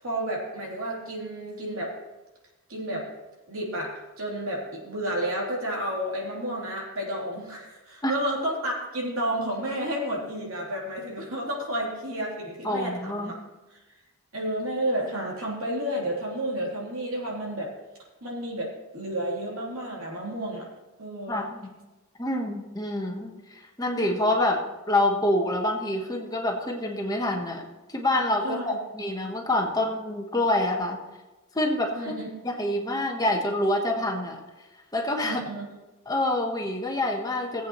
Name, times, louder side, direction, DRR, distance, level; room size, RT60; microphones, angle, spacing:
voice 1, 0.0-1.9 2.7-3.1 3.5-13.4 14.3-17.7 18.2-20.7 21.0-21.4 28.4-28.8 31.9-32.3 35.2-35.6, right 1 dB, 80° right, -3 dB, 3.2 m, -31 dB
voice 2, 12.6-13.3 21.3-21.7 22.2-31.0 31.5-32.1 32.4-34.4 34.9-35.4 36.1-37.7, left 1 dB, 20° left, 1 dB, 1.1 m, -27 dB
18.5 x 8.2 x 3.1 m, 1.1 s
head